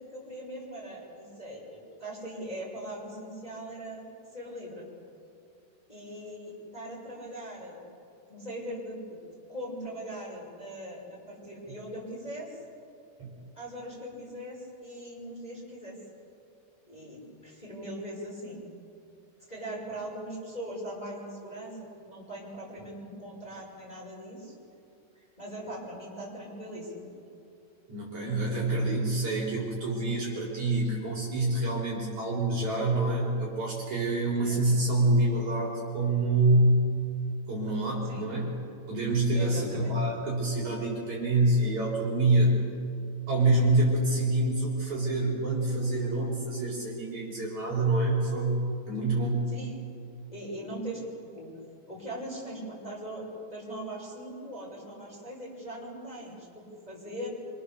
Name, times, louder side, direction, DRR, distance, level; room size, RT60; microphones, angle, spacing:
voice 1, 0.0-4.9 5.9-7.8 8.3-9.2 9.5-12.6 13.6-16.0 16.9-18.6 19.5-21.8 22.0-24.5 25.1-27.1 34.4-34.6 38.1-38.2 39.3-39.9 49.5-49.8 50.3-51.0 51.3-51.5 51.9-57.3, right 1 dB, 10° left, -4 dB, 5.8 m, -40 dB
voice 2, 27.9-37.0 37.5-38.5 38.9-42.6 43.3-49.5, right 2 dB, 45° right, -4 dB, 5.0 m, -26 dB
27.0 x 25.5 x 7.0 m, 2.6 s
omnidirectional pair, 5.0 m